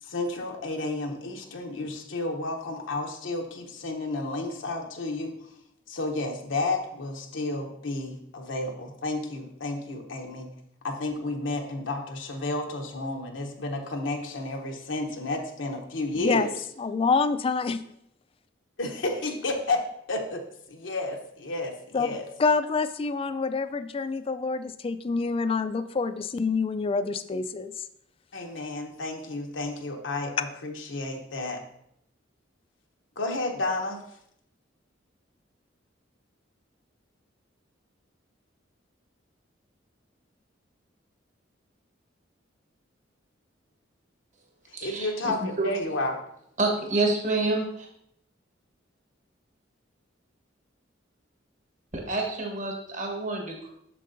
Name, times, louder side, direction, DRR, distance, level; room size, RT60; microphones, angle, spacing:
voice 1, 0.0-5.6 5.9-10.5 10.8-16.6 18.8-22.3 28.3-31.6 33.2-34.2 44.7-46.2, left 2 dB, 85° left, 2 dB, 0.9 m, -32 dB
voice 2, 16.2-16.5 16.8-17.8 21.9-22.1 22.4-27.7, left 4 dB, 30° left, 12 dB, 0.3 m, -26 dB
voice 3, 44.7-45.1 45.4-45.7 46.6-47.9 51.9-53.7, right 2 dB, 40° right, 1 dB, 1.3 m, -28 dB
7.6 x 6.4 x 2.6 m, 0.74 s
head